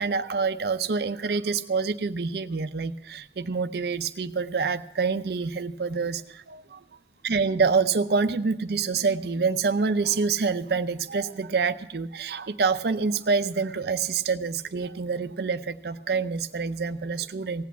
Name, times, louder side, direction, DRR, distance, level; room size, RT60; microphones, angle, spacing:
voice 1, 0.0-17.6, right 4 dB, 60° right, 11 dB, 0.5 m, -27 dB
16.5 x 8.4 x 7.1 m, 0.81 s
head